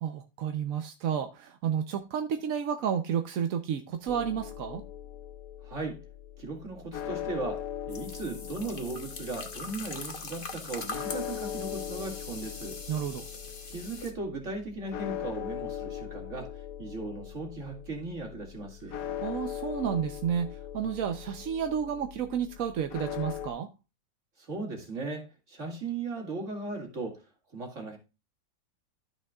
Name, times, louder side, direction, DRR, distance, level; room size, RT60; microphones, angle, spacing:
voice 1, 0.0-4.8 12.9-13.2 19.2-23.7, right 8 dB, 60° right, 0.9 m, -31 dB
sound 1, 4.1-23.5, left 10 dB, 65° left, 1.0 m, -40 dB
voice 2, 5.6-6.0 6.4-12.8 13.7-19.0 24.4-28.0, right 3 dB, 40° right, 2.5 m, -37 dB
sound 2, 7.9-14.1, left 3 dB, 35° left, 1.1 m, -42 dB
13.0 x 6.3 x 2.3 m
omnidirectional pair, 2.0 m